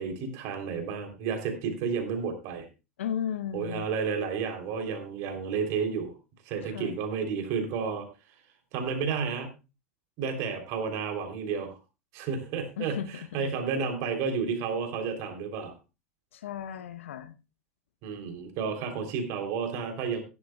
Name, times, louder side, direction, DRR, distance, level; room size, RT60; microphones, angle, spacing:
voice 1, 0.0-2.7 3.5-6.1 6.5-8.1 8.7-9.5 10.2-11.7 12.1-15.7 18.0-20.2, right 5 dB, 45° right, 5 dB, 3.3 m, -31 dB
voice 2, 3.0-3.9 6.6-7.0 12.8-13.1 13.4-13.5 16.3-17.3, left 9 dB, 65° left, 13 dB, 0.9 m, -35 dB
16.5 x 11.5 x 2.3 m, 0.29 s
figure-of-eight pair, 85°, 7 cm